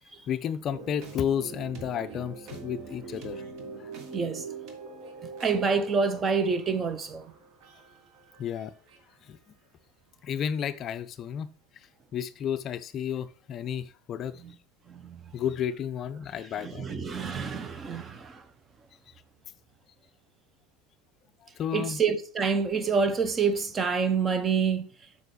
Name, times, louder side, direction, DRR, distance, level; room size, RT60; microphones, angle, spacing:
voice 1, 0.3-3.4 8.4-8.7 9.3-9.4 10.2-11.5 12.1-14.4 15.3-16.9 21.6-22.0, left 9 dB, 40° left, 0.4 m, -32 dB
sound 1, 0.7-9.0, right 5 dB, 50° right, 1.4 m, -43 dB
voice 2, 4.1-4.5 5.2-7.2 14.4-14.5 14.9-15.2 16.6-18.4 21.7-24.9, right 5 dB, 25° right, 0.7 m, -27 dB
7.5 x 5.6 x 3.2 m
figure-of-eight pair, 80°, 0 cm